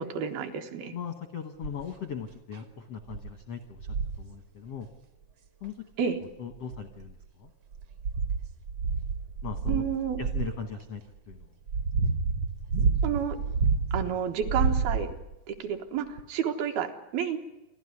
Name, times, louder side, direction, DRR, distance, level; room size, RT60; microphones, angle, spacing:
voice 1, 0.0-0.9 6.0-6.2 9.7-10.2 13.0-13.4 13.9-15.1 15.5-17.4, right 8 dB, 75° right, 5 dB, 3.1 m, -30 dB
voice 2, 0.9-4.9 5.6-5.9 6.4-7.5 9.4-9.8 10.2-11.0 11.3-11.5, left 6 dB, 70° left, 7 dB, 1.4 m, -39 dB
sound 1, 1.6-1.9 2.5-2.6 3.1-3.3 3.8-4.2 5.6-5.7 6.5-7.2 7.7-10.6 11.3-14.1 14.4-15.3 16.2-16.3, right 4 dB, 60° right, 1.7 m, -29 dB
28.5 x 12.0 x 9.8 m, 0.99 s
omnidirectional pair, 4.5 m